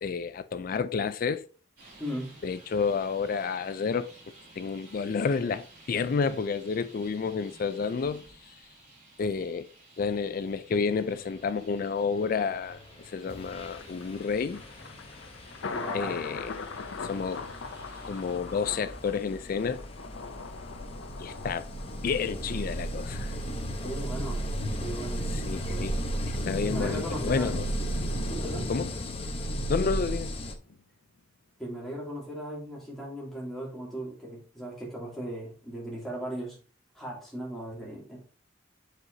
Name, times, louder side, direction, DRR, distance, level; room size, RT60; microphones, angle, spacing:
voice 1, 0.0-1.5 2.4-4.1 4.6-8.2 9.2-9.7 10.0-12.8 13.1-14.6 15.9-16.5 17.0-17.5 18.0-19.8 21.2-21.7 22.0-23.3 25.3-25.9 26.3-27.7 28.7-28.9 29.7-30.4, left 5 dB, 50° left, 0.4 m, -30 dB
Traffic noise roadway noise, 1.8-18.4, right 2 dB, 45° right, 3.3 m, -54 dB
voice 2, 2.0-2.3 15.7-16.2 20.8-20.9 23.8-24.4 24.8-25.3 25.6-25.9 26.6-27.5 28.2-28.7 31.6-36.6 36.9-38.2, right 1 dB, ahead, 2.8 m, -37 dB
sound 1, 12.7-12.9 13.3-30.5, equal, 30° left, 0.9 m, -35 dB
Thunder, 13.7-30.8 31.2-31.3, left 4 dB, 90° left, 0.6 m, -42 dB
7.9 x 5.0 x 2.8 m
head